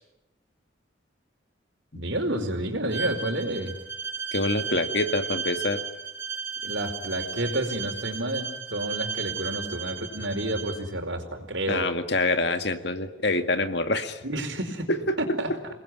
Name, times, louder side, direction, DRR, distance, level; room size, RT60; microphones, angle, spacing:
voice 1, 1.9-3.8 6.6-11.8 14.2-14.9 15.2-15.5, right 1 dB, 75° right, 6 dB, 4.7 m, -30 dB
Bowed string instrument, 2.9-10.8, right 6 dB, 15° right, 6.4 m, -34 dB
voice 2, 4.3-5.8 11.7-14.2 14.9-15.2, left 2 dB, 60° left, 8 dB, 2.1 m, -26 dB
29.5 x 20.5 x 9.6 m, 0.94 s
head